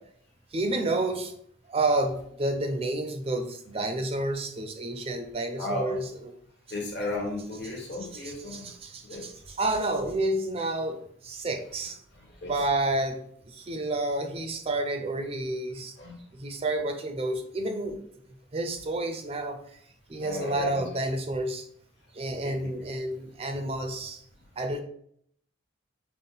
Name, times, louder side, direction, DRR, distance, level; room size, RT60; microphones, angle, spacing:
voice 1, 0.5-1.3 1.7-6.3 8.2-12.0 12.5-13.2 13.5-15.9 16.3-18.0 18.5-19.6 20.1-21.6 22.1-24.2 24.6-24.8, right 2 dB, 30° right, 6 dB, 0.4 m, -30 dB
voice 2, 5.6-6.0 6.7-8.7 9.0-9.3 12.4-12.5 12.8-12.9 16.0-16.1 20.2-20.8 22.3-22.5, left 1 dB, 60° left, -2 dB, 1.4 m, -34 dB
5.4 x 2.1 x 3.8 m, 0.66 s
head